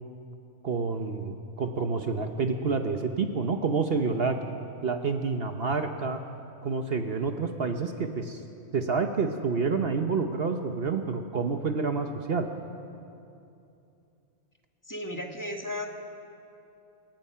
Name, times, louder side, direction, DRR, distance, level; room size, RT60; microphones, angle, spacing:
voice 1, 0.6-4.4 4.8-6.2 6.6-8.4 8.7-12.5, right 4 dB, 50° right, 6 dB, 1.1 m, -28 dB
voice 2, 14.9-15.9, left 1 dB, 15° left, 2 dB, 1.7 m, -34 dB
28.0 x 17.0 x 5.7 m, 2.7 s
omnidirectional pair, 1.3 m